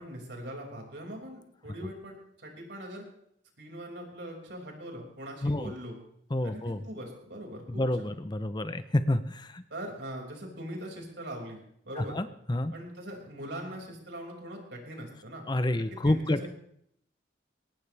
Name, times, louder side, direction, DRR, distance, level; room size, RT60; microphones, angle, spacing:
voice 1, 0.0-3.0 3.6-6.0 6.4-8.1 9.7-12.2 12.7-15.4 16.0-16.5, right 1 dB, 65° right, 0 dB, 5.7 m, -41 dB
voice 2, 6.3-6.8 7.7-9.6 12.0-12.7 15.5-16.5, left 1 dB, 25° left, 11 dB, 0.7 m, -29 dB
22.0 x 18.5 x 3.4 m, 0.71 s
head